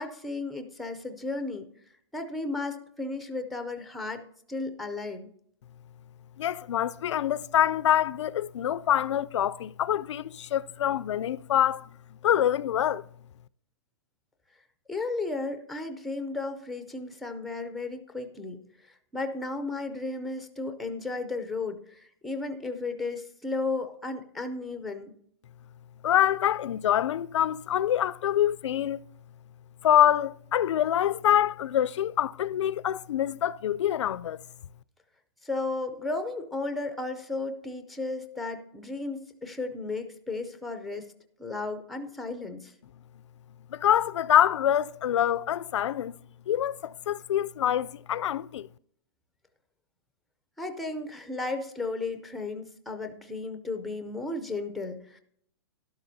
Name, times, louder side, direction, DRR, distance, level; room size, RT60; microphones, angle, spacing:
voice 1, 0.0-1.7 2.1-5.3 14.9-25.1 35.4-41.1 41.4-42.7 50.6-55.2, left 3 dB, ahead, 0.4 m, -34 dB
voice 2, 6.4-11.9 12.2-13.1 26.0-29.0 29.8-34.4 43.7-46.1 46.5-48.7, left 11 dB, 85° left, 0.4 m, -25 dB
12.0 x 12.0 x 2.7 m
hypercardioid pair, 170°, 15 cm